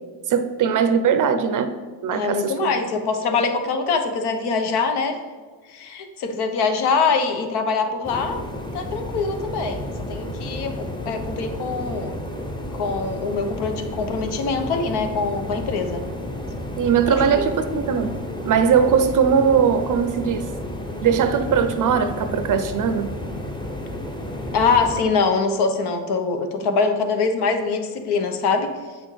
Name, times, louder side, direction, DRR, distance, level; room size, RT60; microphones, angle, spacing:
voice 1, 0.3-1.8 2.0-2.7 16.8-18.1 18.5-20.5 21.0-23.1, right 7 dB, 50° right, 10 dB, 0.6 m, -20 dB
voice 2, 2.1-5.2 5.7-8.4 8.7-12.2 12.7-16.1 17.1-17.5 24.5-29.0, left 4 dB, 70° left, 6 dB, 1.0 m, -23 dB
sound 1, 8.0-25.0, left 1 dB, 10° left, 0.8 m, -32 dB
8.2 x 6.2 x 3.2 m, 1.5 s
cardioid pair, 100°, 42 cm